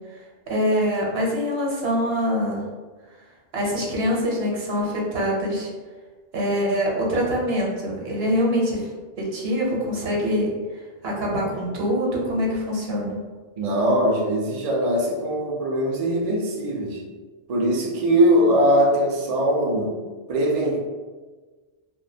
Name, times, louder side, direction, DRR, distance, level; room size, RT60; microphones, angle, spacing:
voice 1, 0.5-2.6 3.5-5.7 6.3-8.9 9.2-10.5 11.0-13.2, equal, 75° right, -3 dB, 0.9 m, -24 dB
voice 2, 13.6-17.0 17.5-19.9 20.3-20.8, equal, 50° right, -2 dB, 0.5 m, -21 dB
2.4 x 2.2 x 2.6 m, 1.4 s
omnidirectional pair, 1.0 m